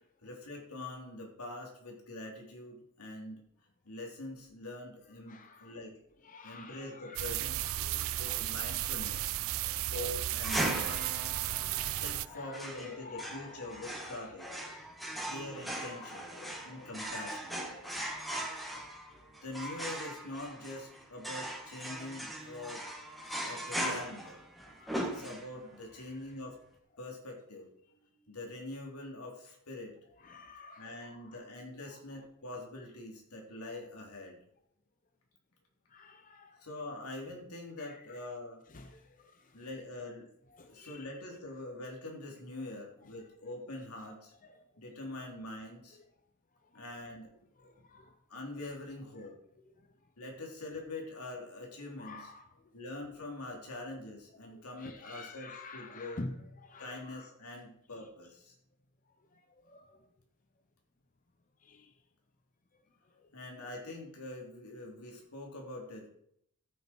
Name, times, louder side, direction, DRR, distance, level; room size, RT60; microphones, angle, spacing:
voice 1, 0.2-3.4 3.9-6.0 6.4-7.6 8.2-9.3 9.9-11.1 11.6-14.5 15.2-16.3 16.7-17.6 19.4-22.8 23.3-24.5 25.0-26.6 27.0-29.9 30.8-34.4 36.6-38.6 39.5-40.3 40.6-44.3 44.8-46.0 46.7-47.3 47.6-47.7 48.3-49.4 50.2-52.3 52.7-56.2 56.8-58.5 63.3-66.1, left 2 dB, 80° left, 3.7 m, -44 dB
voice 2, 5.3-5.9 6.2-9.8 11.9-12.0 12.3-19.7 20.3-20.8 24.6-25.2 25.9-26.4 27.8-27.9 30.2-31.5 31.9-32.0 35.9-36.7 37.8-38.3 38.7-39.7 40.5-41.1 43.0-43.1 44.4-44.8 45.9-46.1 46.6-46.9 47.6-48.2 49.1-49.3 49.6-50.1 52.0-52.7 54.4-57.3 57.9-58.1 59.0-60.1 61.6-62.0 62.8-63.3, left 3 dB, 35° left, 0.8 m, -51 dB
sound 1, 7.2-12.3, right 14 dB, 65° right, 0.4 m, -34 dB
sound 2, 10.4-25.8, right 1 dB, ahead, 2.0 m, -39 dB
13.0 x 9.7 x 4.7 m
head